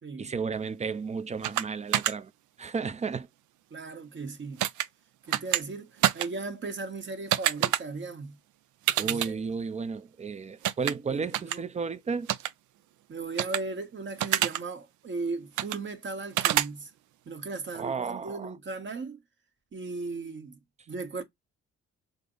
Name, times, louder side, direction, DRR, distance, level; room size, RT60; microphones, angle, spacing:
voice 1, 0.2-2.3 2.6-3.3 9.0-12.3 17.7-18.5, right 5 dB, 25° right, 0.5 m, -33 dB
sound 1, 1.4-1.6 1.9-2.1 4.6-4.9 5.3-5.6 6.0-6.3 7.3-7.8 8.9-9.3 10.6-10.9 11.3-11.6 12.3-12.5 13.4-13.6 14.2-14.6 15.6-15.8 16.4-16.7, right 13 dB, 75° right, 0.5 m, -26 dB
voice 2, 3.7-4.6 5.3-8.4 9.0-9.3 11.1-11.6 13.1-16.9 17.3-19.2 19.7-20.6 20.9-21.2, right 3 dB, 40° right, 1.2 m, -37 dB
5.1 x 2.0 x 3.8 m
cardioid pair, 90°, 30 cm